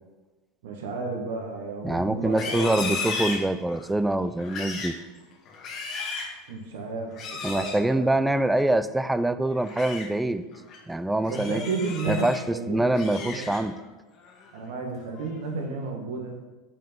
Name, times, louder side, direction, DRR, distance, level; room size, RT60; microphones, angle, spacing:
voice 1, 0.6-3.1 6.5-8.1 11.3-13.5 14.5-16.4, right 3 dB, 80° right, 2 dB, 1.5 m, -33 dB
voice 2, 1.8-4.9 7.4-10.4 10.9-11.6 12.1-13.7, right 1 dB, 5° right, 13 dB, 0.4 m, -25 dB
Livestock farm animals working animals, 2.2-3.9 4.4-5.0 5.5-6.4 7.1-7.8 9.5-10.1 10.5-10.8 11.2-12.4 12.8-13.8 14.2-14.6 15.0-15.4, left 4 dB, 40° left, 1.5 m, -35 dB
5.5 x 5.4 x 5.2 m, 1.2 s
supercardioid pair, 120°, 0 cm